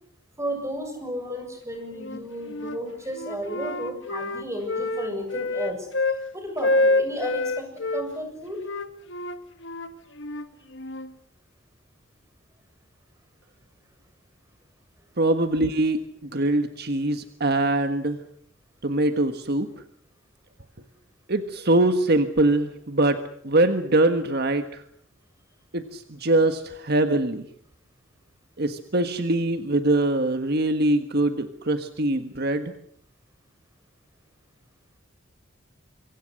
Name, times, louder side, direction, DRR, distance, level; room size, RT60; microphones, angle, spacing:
voice 1, 0.4-7.7 7.9-8.6, equal, 15° right, 4 dB, 7.5 m, -33 dB
Wind instrument woodwind instrument, 2.0-2.8 3.1-6.2 6.6-8.1 8.6-11.1, left 2 dB, 65° left, 1.7 m, -27 dB
voice 2, 15.2-18.2 18.8-19.7 21.3-24.8 25.7-27.5 28.6-32.7, right 2 dB, 55° right, 8 dB, 1.5 m, -23 dB
26.5 x 24.5 x 6.5 m, 0.66 s
head